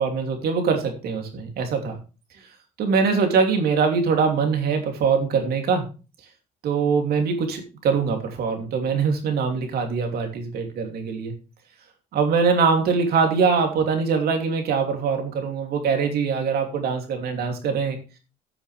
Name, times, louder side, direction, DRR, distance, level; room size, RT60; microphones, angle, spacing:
voice 1, 0.0-1.9 2.8-5.9 6.6-11.3 12.1-18.0, right 5 dB, 65° right, 4 dB, 2.9 m, -23 dB
14.5 x 7.0 x 3.4 m, 0.33 s
cardioid pair, 110°, 17 cm